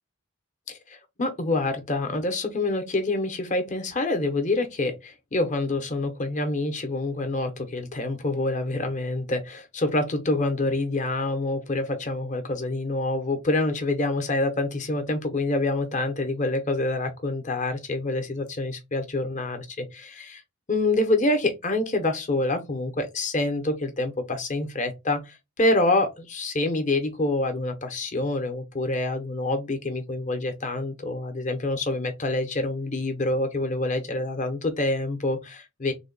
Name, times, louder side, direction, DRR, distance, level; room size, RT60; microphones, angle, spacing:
voice 1, 0.7-20.4 20.7-35.9, left 2 dB, 35° left, 0.7 m, -26 dB
3.5 x 2.2 x 3.8 m
head